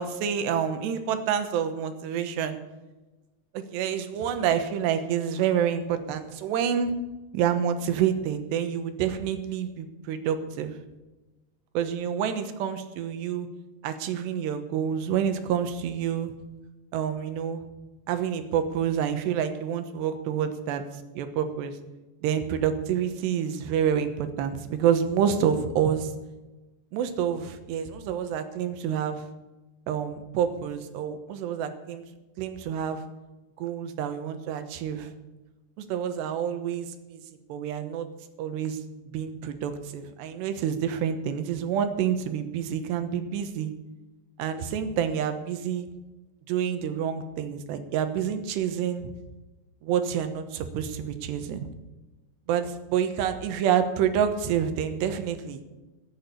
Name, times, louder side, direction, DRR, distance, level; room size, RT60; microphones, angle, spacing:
voice 1, 0.0-2.6 3.5-6.9 7.3-10.8 11.7-13.5 13.8-16.3 16.9-17.6 18.1-20.8 21.1-21.8 22.2-26.1 26.9-29.3 29.9-32.0 32.4-33.0 33.6-35.1 35.8-37.2 37.5-38.1 38.4-38.8 39.1-43.7 44.4-45.9 46.5-49.1 49.8-51.7 52.5-55.6, right 8 dB, 85° right, 9 dB, 3.3 m, -28 dB
15.0 x 8.8 x 8.3 m, 1.1 s
omnidirectional pair, 4.8 m